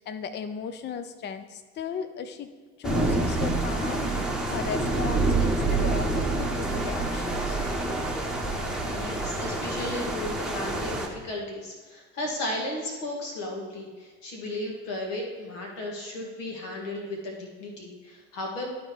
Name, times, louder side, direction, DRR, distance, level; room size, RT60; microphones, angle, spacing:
voice 1, 0.0-2.5 2.8-7.6, left 7 dB, 25° left, 9 dB, 0.5 m, -36 dB
sound 1, 2.8-11.1, right 2 dB, ahead, 1.1 m, -27 dB
voice 2, 8.8-18.7, left 1 dB, 70° left, 0 dB, 1.7 m, -35 dB
11.0 x 4.2 x 3.3 m, 1.5 s
figure-of-eight pair, 60°, 42 cm